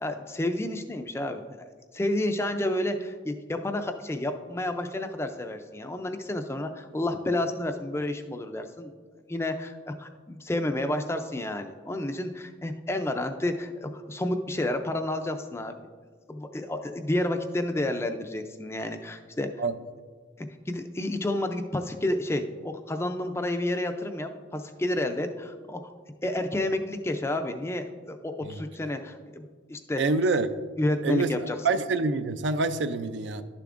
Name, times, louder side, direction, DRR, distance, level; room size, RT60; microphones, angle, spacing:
voice 1, 0.0-8.9 9.3-15.8 16.3-19.5 20.4-25.8 26.2-30.0 30.8-31.6, left 1 dB, 15° left, 6 dB, 0.4 m, -30 dB
voice 2, 30.0-30.5 31.0-31.3 31.6-33.4, right 3 dB, 70° right, 10 dB, 0.4 m, -26 dB
11.5 x 6.8 x 2.5 m, 1.5 s
head